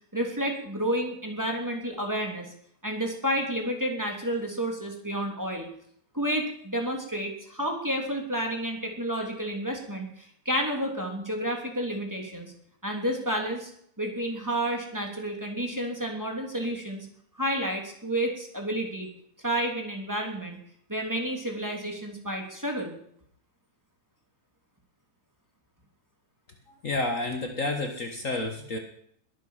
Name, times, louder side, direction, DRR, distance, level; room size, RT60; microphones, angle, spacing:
voice 1, 0.1-2.5 2.8-5.7 6.1-12.5 12.8-13.7 14.0-17.1 17.3-19.1 19.4-20.6 20.9-22.9, right 1 dB, 5° right, 1 dB, 2.6 m, -30 dB
voice 2, 26.8-28.8, left 2 dB, 80° left, 4 dB, 0.7 m, -30 dB
21.5 x 9.9 x 5.7 m, 0.68 s
omnidirectional pair, 3.7 m